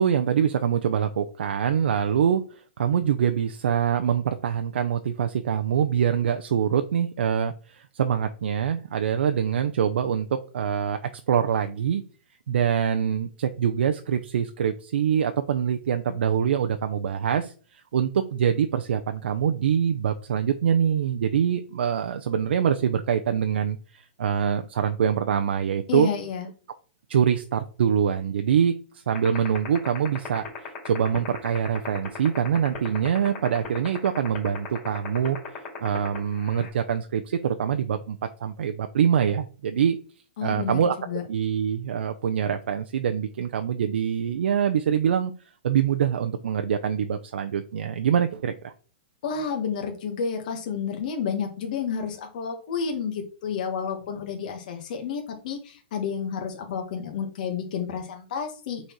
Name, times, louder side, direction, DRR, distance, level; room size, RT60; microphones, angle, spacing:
voice 1, 0.0-12.0 12.5-26.1 27.1-35.4 35.8-40.0 40.4-40.9 41.3-45.3 45.6-48.7, right 8 dB, 75° right, 7 dB, 0.6 m, -24 dB
voice 2, 25.9-26.5 40.4-41.2 49.2-58.9, left 6 dB, 45° left, 3 dB, 1.6 m, -30 dB
sound 1, 29.1-36.7, left 9 dB, 20° left, 2.4 m, -35 dB
6.4 x 4.2 x 4.7 m, 0.38 s
hypercardioid pair, 170°, 6 cm